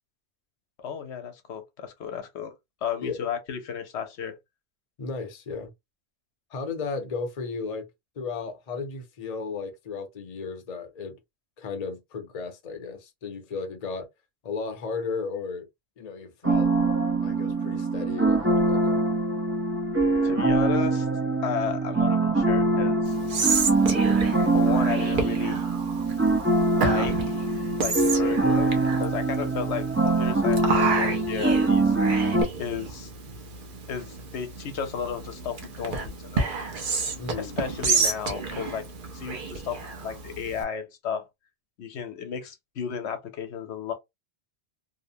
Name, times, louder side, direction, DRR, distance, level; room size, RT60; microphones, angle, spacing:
voice 1, 0.8-2.5 2.8-4.4 20.2-21.1 21.4-23.1 24.5-25.6 26.7-27.4 27.8-31.9 32.6-33.1 33.9-36.5 37.4-38.8 39.1-41.3 41.8-43.9, left 7 dB, 85° left, 1.0 m, -33 dB
voice 2, 5.0-5.7 6.5-7.9 8.2-11.2 11.6-14.1 14.4-15.7 16.0-16.7 17.2-19.0 37.2-37.6, left 4 dB, 40° left, 0.7 m, -34 dB
sound 1, 16.4-32.4, right 3 dB, 20° right, 0.5 m, -23 dB
Whispering, 23.1-40.6, right 4 dB, 55° right, 0.8 m, -31 dB
2.8 x 2.1 x 2.6 m
omnidirectional pair, 1.1 m